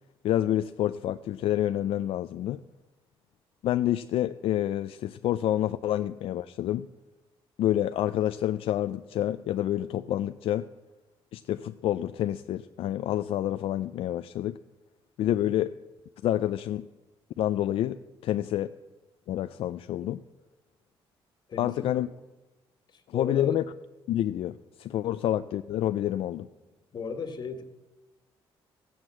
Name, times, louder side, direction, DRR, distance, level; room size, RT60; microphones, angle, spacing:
voice 1, 0.2-2.6 3.6-6.9 7.6-10.7 11.3-14.6 15.2-15.7 16.2-16.9 17.4-18.7 19.3-20.2 21.6-22.1 23.1-23.6 24.1-26.5, left 12 dB, 70° left, 11 dB, 0.4 m, -28 dB
voice 2, 21.5-22.0 22.9-23.6 26.9-27.6, left 5 dB, 45° left, 7 dB, 1.6 m, -36 dB
15.5 x 8.5 x 7.7 m, 1.1 s
cardioid pair, 105°, 10 cm